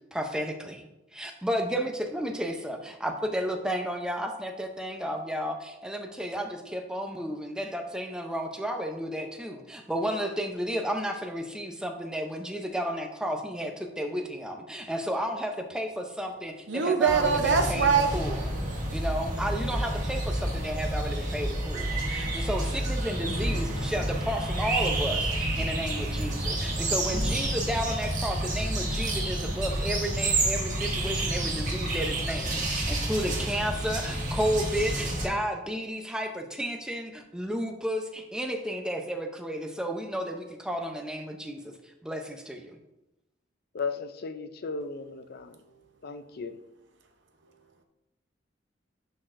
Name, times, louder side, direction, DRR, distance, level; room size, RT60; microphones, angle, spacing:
voice 1, 0.1-0.9 1.1-18.4 18.9-41.7 42.0-42.8, equal, 5° right, 4 dB, 0.6 m, -32 dB
voice 2, 16.7-18.1, right 6 dB, 70° right, 5 dB, 0.8 m, -23 dB
sound 1, 17.1-35.3, right 1 dB, 45° right, 1.4 m, -29 dB
voice 3, 43.7-45.6 46.0-46.6, left 4 dB, 55° left, 10 dB, 0.4 m, -35 dB
10.5 x 4.0 x 2.6 m, 0.93 s
head